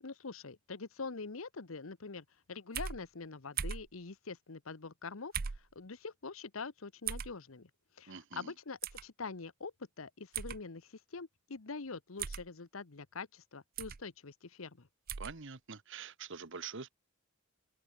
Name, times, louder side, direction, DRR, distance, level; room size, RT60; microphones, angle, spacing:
voice 1, 0.0-7.7 8.0-14.9, left 4 dB, 85° left, 1.1 m, -45 dB
sound 1, 2.7-3.0 3.6-3.9 5.3-5.6 7.1-7.3 8.8-9.0 10.3-10.6 12.2-12.5 13.8-14.0 15.1-15.3, right 7 dB, 45° right, 0.6 m, -38 dB
voice 2, 8.1-8.5 15.2-16.9, right 5 dB, 65° right, 1.4 m, -45 dB
head